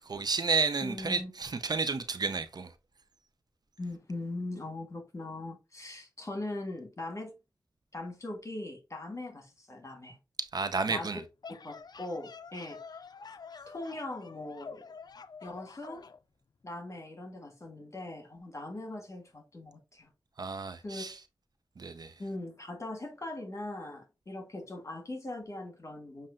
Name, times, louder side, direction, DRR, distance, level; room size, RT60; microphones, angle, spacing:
voice 1, 0.0-2.7 10.4-11.2 20.4-21.2 21.8-22.2, right 4 dB, 55° right, 0.5 m, -31 dB
voice 2, 0.8-1.3 3.8-7.3 7.9-10.2 10.9-11.1 11.6-13.0 13.7-14.8 15.4-16.1 16.6-20.1 20.8-21.0 22.2-26.3, left 2 dB, 40° left, 1.5 m, -40 dB
sound 1, 11.4-16.2, left 5 dB, 55° left, 0.4 m, -48 dB
7.3 x 2.6 x 2.5 m
cardioid pair, 60°, 8 cm